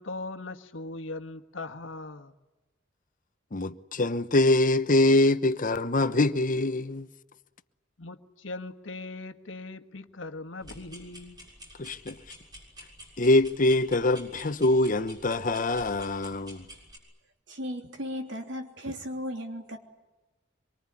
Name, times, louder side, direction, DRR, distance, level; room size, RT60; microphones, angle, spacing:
voice 1, 0.0-2.3 8.0-11.4, left 2 dB, 85° left, 1.5 m, -39 dB
voice 2, 3.5-7.1 11.8-12.2 13.2-16.6, left 2 dB, 45° left, 1.0 m, -24 dB
sound 1, 10.6-17.0, equal, 20° right, 6.9 m, -49 dB
voice 3, 17.5-19.8, equal, 70° right, 3.3 m, -36 dB
25.0 x 24.0 x 9.9 m
head